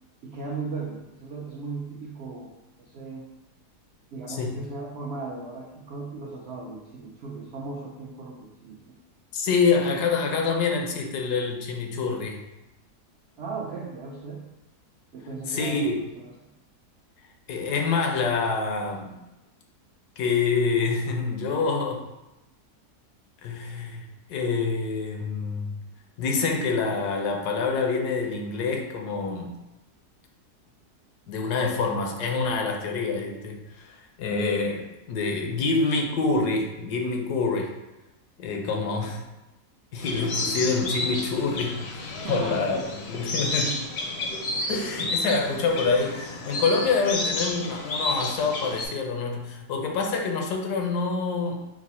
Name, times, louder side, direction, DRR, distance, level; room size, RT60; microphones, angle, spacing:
voice 1, 0.2-2.5 2.8-3.3 4.1-9.0 13.4-14.4 15.1-16.3 38.9-39.1 42.1-42.9 43.6-43.8, right 4 dB, 80° right, -1 dB, 0.5 m, -37 dB
voice 2, 9.3-12.4 15.5-15.9 17.5-19.1 20.2-22.0 23.4-24.0 24.3-25.7 26.2-29.6 31.3-37.7 38.4-39.2 39.9-42.8 43.1-43.8 44.7-51.7, left 4 dB, 80° left, 2 dB, 1.2 m, -26 dB
sound 1, 40.0-48.9, left 2 dB, 60° left, 0.7 m, -31 dB
4.9 x 2.0 x 4.1 m, 0.97 s
omnidirectional pair, 1.7 m